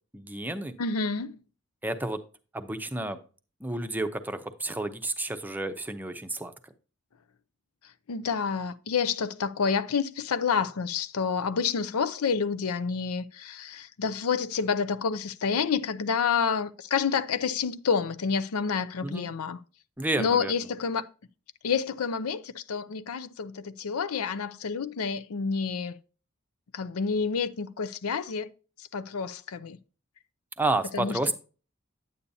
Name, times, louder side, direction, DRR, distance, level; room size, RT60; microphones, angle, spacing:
voice 1, 0.1-0.8 1.8-2.2 2.5-3.2 3.6-6.7 19.0-19.3 20.0-20.5 30.6-31.3, right 2 dB, 10° right, 0.6 m, -31 dB
voice 2, 0.8-1.4 8.1-19.6 20.2-21.0 21.6-26.0 26.7-28.5 28.8-29.8 30.9-31.2, left 6 dB, 85° left, 0.6 m, -29 dB
9.4 x 8.4 x 2.7 m
head